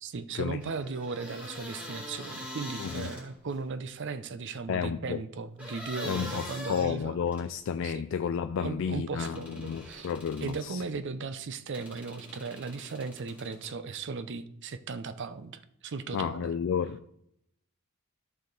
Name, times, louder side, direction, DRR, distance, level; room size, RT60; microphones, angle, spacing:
voice 1, 0.0-7.2 7.8-8.0 8.6-10.1 10.4-16.5, right 4 dB, 55° right, 0.5 m, -37 dB
sound 1, 0.6-3.6 5.6-7.5 9.3-10.7 11.7-13.7, left 1 dB, 5° right, 2.2 m, -43 dB
voice 2, 4.7-5.2 6.1-10.8 16.1-17.0, left 7 dB, 60° left, 0.3 m, -31 dB
13.5 x 5.0 x 3.9 m
head